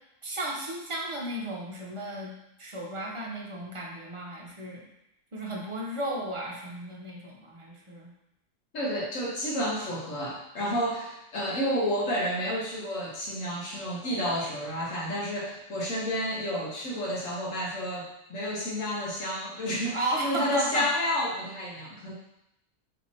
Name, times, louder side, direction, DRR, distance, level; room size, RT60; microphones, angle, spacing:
voice 1, 0.2-4.8 5.3-8.1 19.9-20.9, right 1 dB, 30° right, -3 dB, 0.6 m, -34 dB
voice 2, 8.7-22.1, equal, 80° left, -3 dB, 1.4 m, -30 dB
4.3 x 3.4 x 2.9 m, 0.83 s
omnidirectional pair, 1.3 m